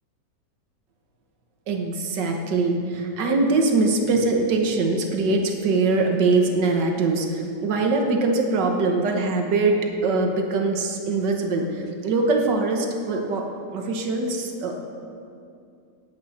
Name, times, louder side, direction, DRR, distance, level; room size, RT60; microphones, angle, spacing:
voice 1, 1.7-9.8 10.0-13.5 13.7-14.7, right 3 dB, 75° right, 2 dB, 1.9 m, -22 dB
20.0 x 8.5 x 4.3 m, 2.5 s
omnidirectional pair, 1.9 m